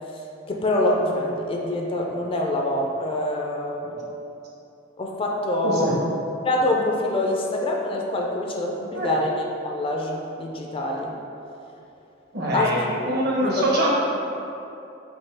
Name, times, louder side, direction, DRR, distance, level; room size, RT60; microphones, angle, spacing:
voice 1, 0.5-4.0 5.0-6.0 6.4-11.1 12.5-13.1 13.4-13.7, left 1 dB, 30° left, 0 dB, 0.3 m, -25 dB
voice 2, 12.3-13.9, right 1 dB, 55° right, -4 dB, 0.9 m, -24 dB
5.4 x 2.6 x 3.4 m, 2.8 s
head